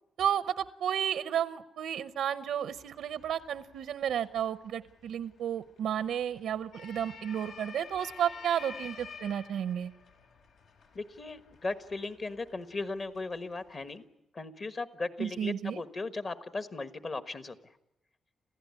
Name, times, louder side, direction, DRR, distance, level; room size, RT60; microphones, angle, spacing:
voice 1, 0.2-9.9 15.2-15.8, right 9 dB, 80° right, 13 dB, 0.8 m, -32 dB
sound 1, 2.7-14.0, left 5 dB, 75° left, 4.0 m, -51 dB
voice 2, 10.9-14.0 14.3-17.5, left 3 dB, 30° left, 11 dB, 1.4 m, -37 dB
27.5 x 15.5 x 9.7 m, 0.91 s
wide cardioid pair, 165°, 0 cm